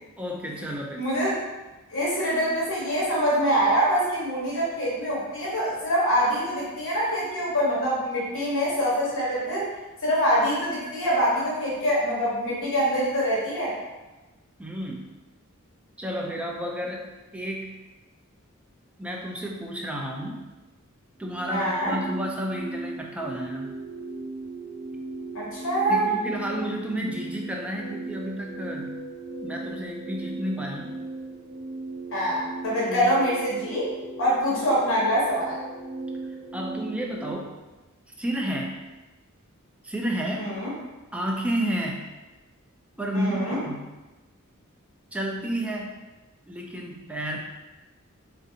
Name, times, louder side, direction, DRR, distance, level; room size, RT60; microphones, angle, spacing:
voice 1, 0.2-1.0 14.6-15.1 16.0-17.7 19.0-20.5 21.2-23.7 25.9-29.0 29.4-30.9 32.9-33.1 36.5-37.5 38.2-38.8 39.8-40.5 41.1-42.1 43.0-43.9 45.1-45.9 46.5-47.4, equal, 5° right, -1 dB, 0.3 m, -31 dB
voice 2, 1.0-1.3 1.9-9.7 10.0-13.7 21.5-21.9 25.3-26.1 32.1-33.9 34.2-35.6 40.4-40.7 43.1-43.6, equal, 65° left, -6 dB, 1.0 m, -24 dB
sound 1, 21.2-37.3, right 3 dB, 40° right, 1.1 m, -37 dB
3.3 x 2.5 x 2.7 m, 1.1 s
head